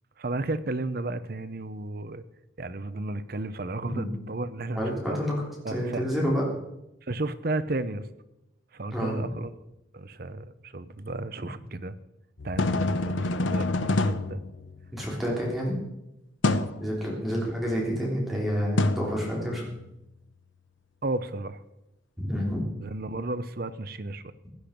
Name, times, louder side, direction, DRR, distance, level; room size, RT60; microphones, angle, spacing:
voice 1, 0.2-2.2 2.6-5.2 5.6-6.0 7.0-8.1 8.7-9.5 9.9-11.9 12.4-14.4 16.4-16.7 21.0-21.6 22.8-24.3, right 2 dB, 50° right, 13 dB, 0.7 m, -33 dB
voice 2, 4.8-5.3 5.7-6.4 8.9-9.3 14.9-15.8 16.8-19.6 22.2-22.7, equal, ahead, -5 dB, 3.6 m, -28 dB
sound 1, 12.4-15.2 16.4-16.8 18.8-19.8, left 2 dB, 80° left, 0.7 m, -28 dB
16.0 x 10.5 x 5.2 m, 0.90 s
head